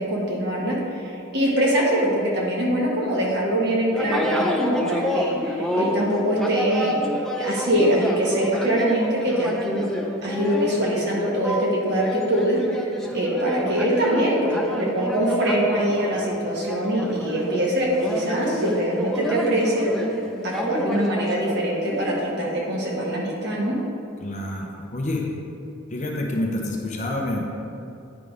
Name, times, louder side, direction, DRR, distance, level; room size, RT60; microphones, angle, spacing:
voice 1, 0.0-9.9 10.2-12.6 13.1-19.9 20.4-23.7, right 1 dB, 50° right, -4 dB, 1.5 m, -23 dB
sound 1, 3.9-22.1, equal, ahead, 0.4 m, -29 dB
voice 2, 24.2-25.3 25.9-27.6, left 1 dB, 35° left, -1 dB, 0.8 m, -28 dB
9.5 x 3.7 x 5.0 m, 2.7 s
head